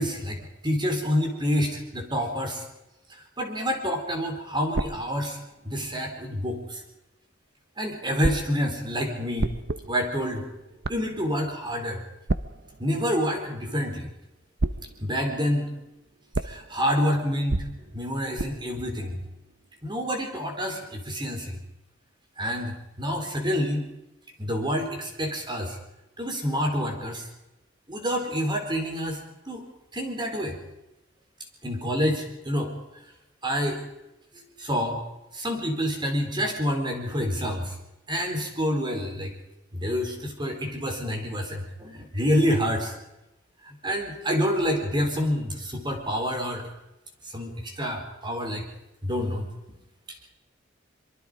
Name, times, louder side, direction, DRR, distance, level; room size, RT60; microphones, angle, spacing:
voice 1, 0.0-2.6 3.1-5.4 5.6-6.8 7.8-9.5 9.9-10.5 10.9-12.0 12.8-14.1 15.0-15.7 16.4-17.7 17.9-19.2 19.8-21.6 22.4-23.9 24.4-25.8 26.2-27.3 27.9-29.7 29.9-30.6 31.6-32.7 33.4-33.8 34.3-35.0 35.3-37.7 38.1-39.3 39.7-42.9 43.6-46.7 47.2-48.7 49.0-49.5 50.1-50.3, equal, 25° right, 3 dB, 4.1 m, -28 dB
sound 1, 4.7-6.7 8.2-14.2 14.6-20.1, right 2 dB, 55° right, 0.8 m, -35 dB
25.0 x 23.0 x 5.1 m, 0.94 s
head